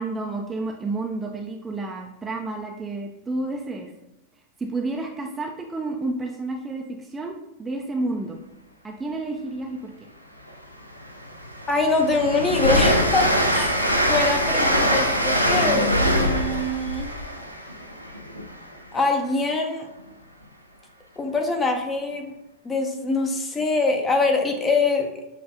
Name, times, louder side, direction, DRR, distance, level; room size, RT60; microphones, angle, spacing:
voice 1, 0.0-3.9 4.6-8.4 8.8-9.9, right 2 dB, 15° right, 1 dB, 0.5 m, -30 dB
Train, 10.5-10.6 11.0-18.7, equal, 90° left, 0.5 m, -23 dB
voice 2, 11.7-17.1 18.9-19.9 21.2-22.3 22.6-25.1, left 3 dB, 20° left, 3 dB, 0.7 m, -24 dB
6.8 x 2.5 x 2.6 m, 0.91 s
figure-of-eight pair, 90°, 0 cm